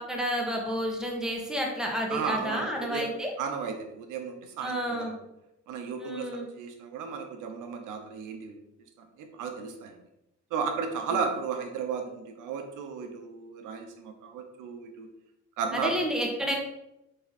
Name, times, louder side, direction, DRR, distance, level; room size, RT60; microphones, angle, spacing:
voice 1, 0.0-3.3 4.6-5.1 6.0-6.5 15.7-16.6, equal, ahead, 0 dB, 1.7 m, -30 dB
voice 2, 2.1-3.1 3.4-5.1 5.7-8.6 9.0-10.0 10.5-15.1 15.6-15.9, right 6 dB, 90° right, 5 dB, 1.0 m, -34 dB
7.8 x 3.8 x 4.1 m, 0.86 s
cardioid pair, 95°, 30 cm